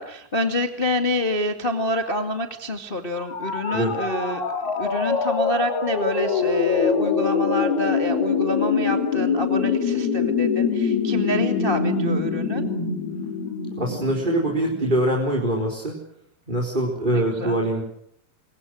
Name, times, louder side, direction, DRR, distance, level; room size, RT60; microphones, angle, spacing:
voice 1, 0.0-12.7 17.1-17.6, left 1 dB, 25° left, 5 dB, 1.1 m, -27 dB
sound 1, 3.2-15.0, left 5 dB, 65° left, 6.4 m, -24 dB
voice 2, 13.8-16.0 16.5-17.8, right 1 dB, 10° right, 0 dB, 4.0 m, -23 dB
28.5 x 24.5 x 6.5 m, 0.74 s
omnidirectional pair, 5.0 m